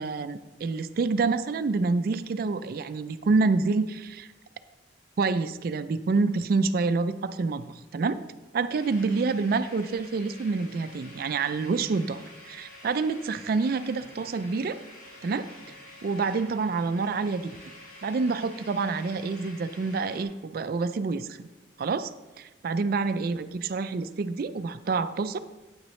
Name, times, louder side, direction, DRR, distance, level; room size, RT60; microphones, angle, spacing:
voice 1, 0.0-4.3 5.2-8.2 8.5-14.8 15.2-15.5 16.0-17.6 18.0-21.5 21.8-22.1 22.4-25.4, right 4 dB, 55° right, 12 dB, 0.4 m, -27 dB
sound 1, 8.7-20.2, left 1 dB, 50° left, 2.9 m, -49 dB
9.5 x 9.0 x 3.1 m, 1.1 s
head